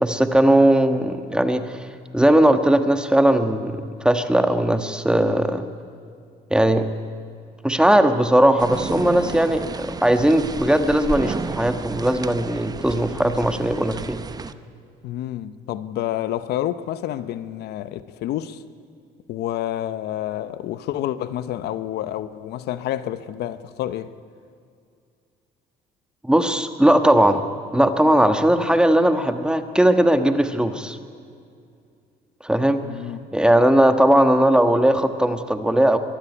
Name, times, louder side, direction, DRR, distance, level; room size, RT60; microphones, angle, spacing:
voice 1, 0.0-5.7 6.5-6.9 7.6-14.2 26.2-27.4 27.7-31.0 32.4-32.8 33.3-36.0, right 1 dB, 5° right, 1.4 m, -18 dB
sound 1, 8.6-14.5, right 4 dB, 25° right, 0.8 m, -32 dB
voice 2, 15.0-18.6 19.3-24.1 32.8-33.2, left 12 dB, 75° left, 0.9 m, -29 dB
22.5 x 13.0 x 9.9 m
cardioid pair, 110°, 17 cm